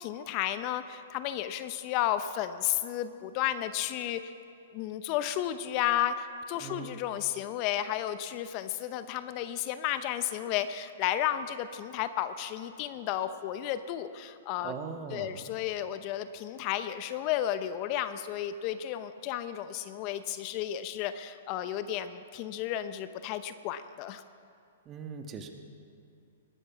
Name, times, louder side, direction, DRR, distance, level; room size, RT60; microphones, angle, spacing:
voice 1, 0.0-4.3 4.7-14.7 15.1-24.2, left 11 dB, 40° left, 12 dB, 0.7 m, -33 dB
voice 2, 6.6-7.0 14.6-15.5 24.8-25.5, right 5 dB, 25° right, 5 dB, 1.4 m, -40 dB
20.5 x 9.9 x 6.1 m, 2.4 s
hypercardioid pair, 120°, 0 cm